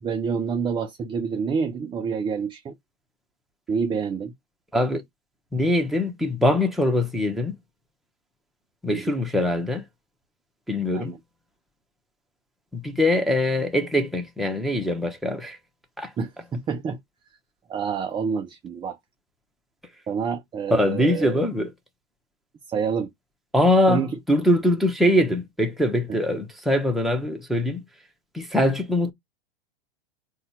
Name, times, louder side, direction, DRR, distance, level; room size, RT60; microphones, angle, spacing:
voice 1, 0.0-2.8 3.7-4.3 8.9-9.1 10.9-11.2 16.2-17.0 17.7-19.0 20.1-21.4 22.7-23.1 23.9-24.2, right 6 dB, 15° right, 0.4 m, -27 dB
voice 2, 5.5-7.6 8.8-9.8 10.7-11.2 12.7-15.6 16.0-16.1 20.7-21.7 23.5-27.8 28.3-29.1, left 1 dB, ahead, 0.9 m, -22 dB
4.0 x 2.3 x 4.1 m
hypercardioid pair, 105°, 31 cm